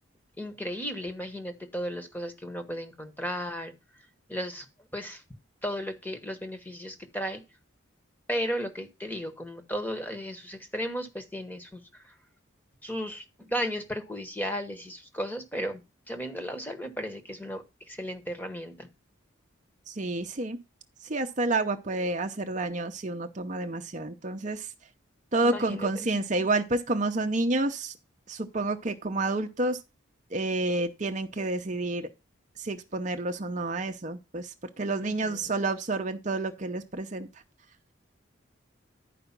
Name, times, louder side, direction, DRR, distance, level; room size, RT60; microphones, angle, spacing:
voice 1, 0.4-3.7 4.3-4.7 4.9-5.2 5.6-7.4 8.3-12.1 12.8-15.8 16.1-18.9 25.4-26.3 35.0-35.4, equal, 10° left, 1.1 m, -35 dB
voice 2, 19.9-20.6 21.0-24.7 25.3-27.9 28.3-29.8 30.3-32.1 32.6-37.3, right 2 dB, 35° right, 0.7 m, -29 dB
11.0 x 5.0 x 5.8 m
head